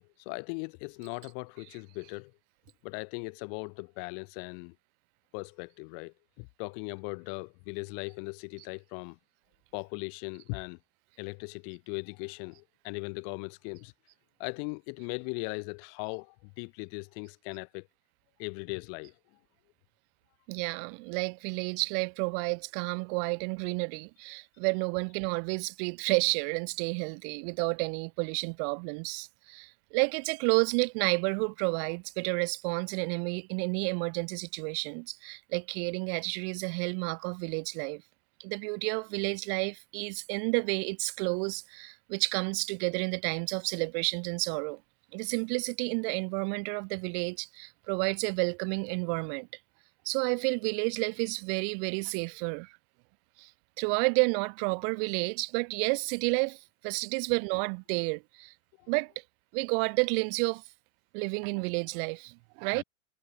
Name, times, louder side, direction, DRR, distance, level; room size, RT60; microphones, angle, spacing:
voice 1, 0.0-2.3 2.8-4.8 5.3-9.2 9.7-10.8 11.2-13.9 14.4-17.9 18.4-19.2 58.8-58.9 61.5-61.6 62.7-62.8, left 40 dB or more, 45° left, 7.6 m, -39 dB
voice 2, 20.5-38.0 38.4-44.8 45.1-49.5 50.0-52.7 53.4-53.5 53.8-58.5 58.9-59.1 59.5-60.6 61.1-62.8, right 40 dB or more, 40° right, 2.6 m, -31 dB
supercardioid pair, 155°, 41 cm